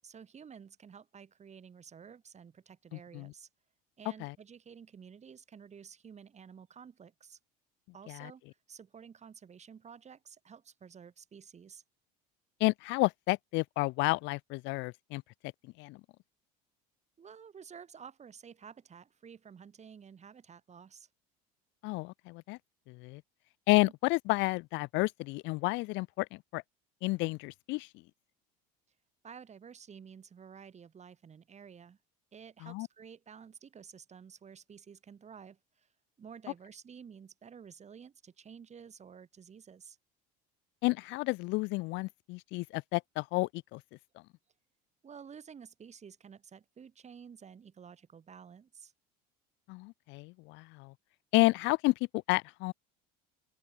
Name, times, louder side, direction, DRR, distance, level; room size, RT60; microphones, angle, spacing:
voice 1, 0.0-3.5 4.0-7.4 7.9-11.8 17.2-21.1 23.8-23.9 29.2-32.0 32.3-35.9 36.2-40.0 45.0-48.9, right 7 dB, 35° right, 7.1 m, -52 dB
voice 2, 12.6-15.2 15.8-16.0 21.8-22.6 22.9-23.2 23.7-26.3 26.5-26.6 27.0-27.9 32.6-32.9 40.8-43.8 49.7-50.9 51.3-52.7, left 23 dB, 65° left, 1.5 m, -31 dB
open air
hypercardioid pair, 80°, 21 cm